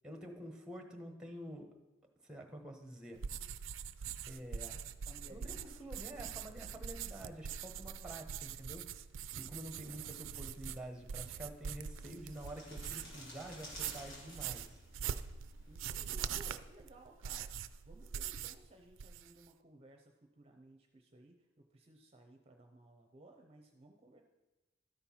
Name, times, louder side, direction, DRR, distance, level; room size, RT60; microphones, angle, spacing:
voice 1, 0.0-1.7 2.2-3.2 4.3-4.8 5.3-8.9 9.3-14.8, right 1 dB, 5° right, 3 dB, 1.0 m, -48 dB
sound 1, 3.2-13.2 13.6-18.7 18.9-19.5, right 8 dB, 90° right, 0.4 m, -43 dB
voice 2, 5.1-5.9 9.8-10.2 15.7-17.5 17.8-24.2, right 1 dB, 30° right, 3 dB, 0.6 m, -59 dB
sound 2, 10.9-15.9, left 1 dB, 80° left, 2.7 m, -54 dB
13.0 x 4.4 x 5.6 m, 1.1 s
head